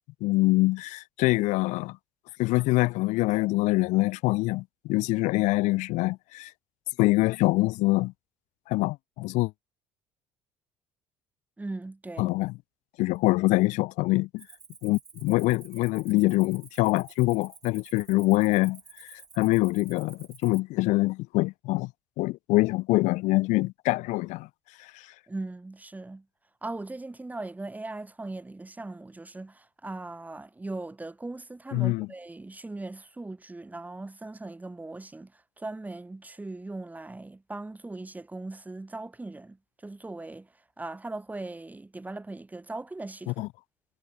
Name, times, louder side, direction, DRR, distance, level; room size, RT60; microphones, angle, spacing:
voice 1, 0.2-2.0 2.4-6.5 7.0-8.1 8.7-9.5 12.2-12.5 13.0-14.4 14.8-21.9 22.2-24.5 24.8-25.1 31.7-32.1 43.3-43.5, left 21 dB, 70° left, 0.9 m, -25 dB
voice 2, 11.6-12.3 25.3-26.2 26.6-43.5, right 2 dB, 10° right, 1.8 m, -39 dB
Cricket, 14.4-20.6, right 5 dB, 30° right, 7.2 m, -51 dB
supercardioid pair, 85°, 13 cm